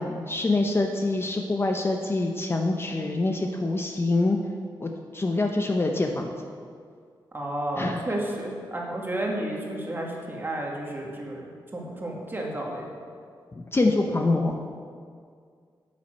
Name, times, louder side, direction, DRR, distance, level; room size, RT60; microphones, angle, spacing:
voice 1, 0.0-4.4 4.8-6.3 7.8-8.0 13.5-14.6, left 2 dB, 30° left, 2 dB, 0.8 m, -25 dB
voice 2, 7.3-13.0, right 1 dB, 25° right, -1 dB, 2.0 m, -32 dB
8.6 x 7.5 x 6.4 m, 2.1 s
wide cardioid pair, 95°, 8 cm